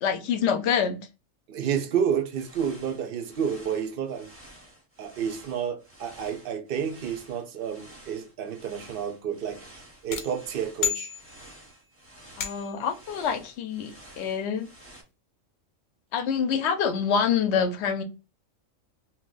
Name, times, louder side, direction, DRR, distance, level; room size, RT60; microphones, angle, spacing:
voice 1, 0.0-1.0 12.4-14.7 16.1-18.0, left 7 dB, 65° left, 0.8 m, -26 dB
voice 2, 1.5-4.3 5.0-11.1, right 8 dB, 60° right, 0.6 m, -30 dB
sound 1, 2.1-15.0, right 1 dB, 10° right, 0.8 m, -51 dB
sound 2, 10.1-11.7 12.4-12.9, left 9 dB, 90° left, 1.0 m, -32 dB
2.9 x 2.1 x 3.7 m
omnidirectional pair, 1.3 m